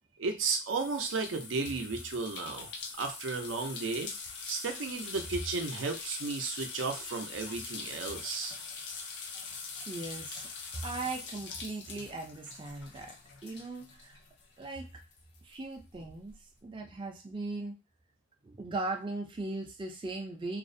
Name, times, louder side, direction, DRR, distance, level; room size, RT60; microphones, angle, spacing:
voice 1, 0.2-2.7 3.0-4.1 4.5-8.6, right 4 dB, 85° right, 5 dB, 0.5 m, -34 dB
sound 1, 0.7-14.8 15.1-16.3, left 5 dB, 60° left, 0.4 m, -43 dB
voice 2, 9.9-13.2 13.4-14.2 14.6-15.0 15.4-16.3 16.6-17.8 18.4-20.6, right 2 dB, 25° right, 1 dB, 0.3 m, -38 dB
2.4 x 2.0 x 2.5 m, 0.27 s
head